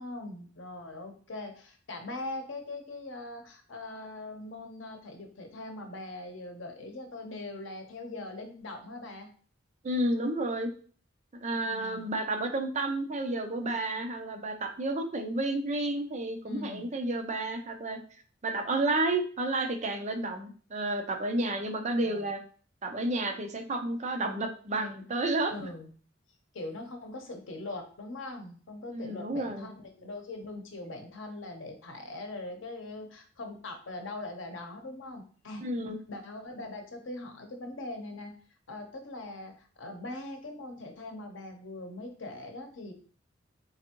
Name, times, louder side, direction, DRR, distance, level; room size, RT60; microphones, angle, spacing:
voice 1, 0.0-9.3 11.6-12.1 16.4-16.9 21.6-21.7 22.0-22.3 25.5-25.9 26.5-35.6 36.1-38.3 38.7-42.9, left 2 dB, 80° left, 5 dB, 0.8 m, -41 dB
voice 2, 9.8-10.7 11.4-18.0 18.4-22.4 22.8-25.5 28.9-29.7 35.6-36.0, right 2 dB, 40° right, 5 dB, 0.5 m, -31 dB
4.0 x 3.4 x 2.9 m, 0.43 s
head